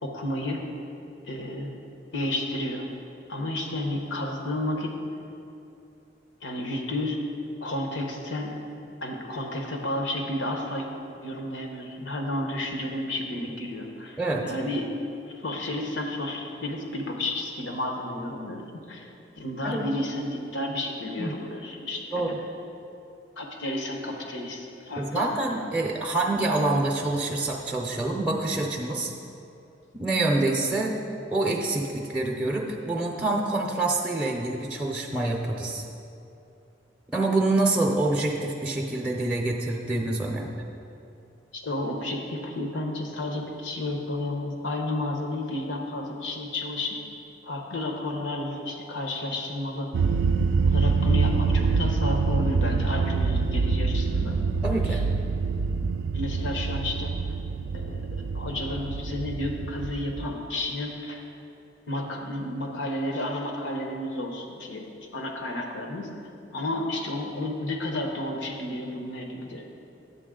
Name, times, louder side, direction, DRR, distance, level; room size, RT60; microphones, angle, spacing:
voice 1, 0.0-0.6 1.2-1.7 2.1-2.9 3.3-4.9 6.4-7.2 7.6-8.5 9.0-10.9 11.2-14.9 15.3-19.1 19.3-22.2 23.4-25.6 41.5-47.0 47.4-49.9 50.6-54.4 54.8-55.0 56.1-57.1 57.7-58.1 58.3-61.2 61.9-66.1 66.5-69.6, left 1 dB, 90° left, 2 dB, 1.0 m, -31 dB
voice 2, 25.0-29.1 29.9-30.9 31.3-35.8 37.1-40.5 54.6-55.0, right 2 dB, 5° right, 0 dB, 0.6 m, -26 dB
sound 1, 49.9-60.2, right 4 dB, 70° right, 0.3 m, -25 dB
9.8 x 8.1 x 3.7 m, 2.7 s
head